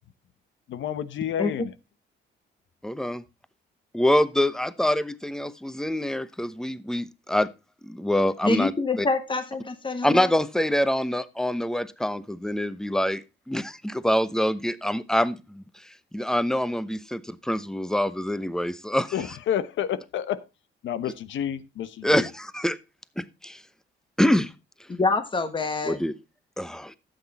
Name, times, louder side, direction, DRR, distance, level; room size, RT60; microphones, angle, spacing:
voice 1, 0.7-1.7 19.1-20.4 20.8-22.3, left 10 dB, 70° left, 1.1 m, -30 dB
voice 2, 2.8-3.2 3.9-7.5 7.8-8.7 9.0-9.1 10.0-15.6 16.1-19.1 22.0-22.8 23.2-23.6 24.2-24.5 25.8-26.1 26.6-27.0, left 1 dB, 5° left, 0.9 m, -25 dB
voice 3, 8.4-10.3 24.9-26.0, left 3 dB, 25° left, 1.5 m, -26 dB
12.0 x 8.3 x 4.2 m
cardioid pair, 90°, 20 cm